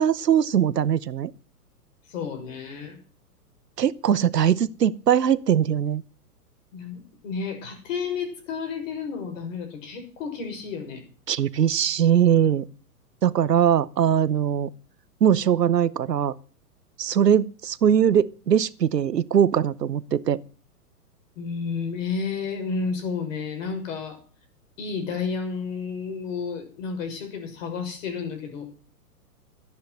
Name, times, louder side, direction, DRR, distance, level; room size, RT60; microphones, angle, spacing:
voice 1, 0.0-1.3 3.8-6.0 11.3-12.7 13.2-14.7 15.2-16.3 17.0-20.4, right 9 dB, 80° right, 1.0 m, -21 dB
voice 2, 2.1-3.0 6.7-11.0 21.4-24.2 24.8-28.7, left 5 dB, 50° left, 6.6 m, -31 dB
13.0 x 10.5 x 7.9 m
hypercardioid pair, 115°, 48 cm